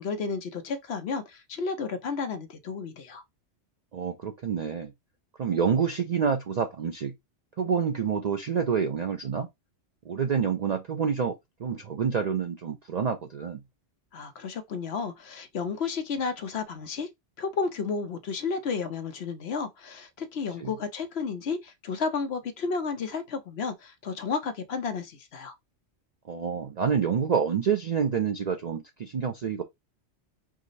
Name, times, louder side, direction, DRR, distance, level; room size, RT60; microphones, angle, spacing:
voice 1, 0.0-3.2 14.1-17.1 17.4-25.5, left 5 dB, 65° left, 1.0 m, -32 dB
voice 2, 3.9-4.9 5.4-7.1 7.6-9.5 10.1-13.6 20.6-20.7 26.3-29.6, right 7 dB, 60° right, 0.4 m, -28 dB
4.9 x 2.0 x 3.9 m
omnidirectional pair, 1.2 m